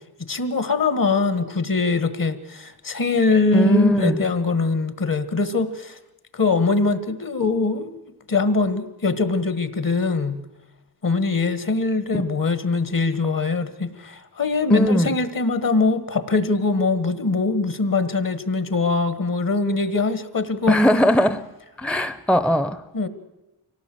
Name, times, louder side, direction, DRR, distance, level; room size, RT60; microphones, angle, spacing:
voice 1, 0.3-6.0 6.3-7.9 8.3-10.4 11.0-20.8 22.9-23.1, left 3 dB, 55° left, 1.6 m, -22 dB
voice 2, 3.5-4.2 14.7-15.2 20.7-21.5 21.8-22.8, equal, 5° left, 0.7 m, -19 dB
24.5 x 17.5 x 7.8 m
wide cardioid pair, 75°, 40 cm